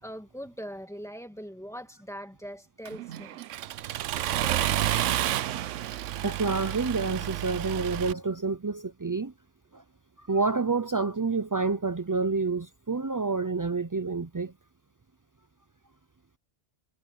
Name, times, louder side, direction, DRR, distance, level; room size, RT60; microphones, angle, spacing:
voice 1, 0.0-3.4, equal, ahead, 2.1 m, -41 dB
Accelerating revving vroom, 2.9-8.1, right 12 dB, 80° right, 1.0 m, -30 dB
voice 2, 6.2-9.3 9.7-9.8 10.2-14.5, right 4 dB, 30° right, 0.3 m, -28 dB
omnidirectional pair, 1.2 m